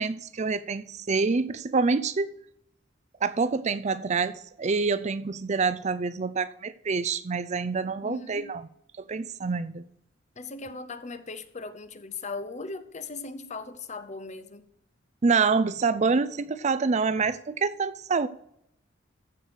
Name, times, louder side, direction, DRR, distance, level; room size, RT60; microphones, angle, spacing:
voice 1, 0.0-2.3 3.2-8.6 9.0-9.8 15.2-18.3, right 4 dB, 35° right, 0.5 m, -26 dB
voice 2, 8.0-8.5 10.4-14.6, left 3 dB, 35° left, 0.8 m, -38 dB
14.5 x 4.9 x 6.2 m
head